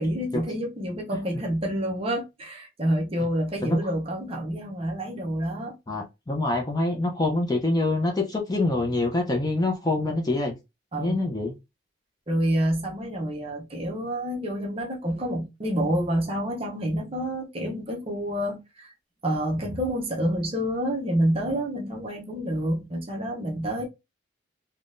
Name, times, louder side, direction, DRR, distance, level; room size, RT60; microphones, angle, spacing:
voice 1, 0.0-5.8 10.9-11.2 12.3-18.9 19.2-23.8, equal, 30° right, 0.7 m, -28 dB
voice 2, 5.9-10.5 11.0-11.5, left 2 dB, 20° left, 0.5 m, -25 dB
3.5 x 2.2 x 2.5 m
head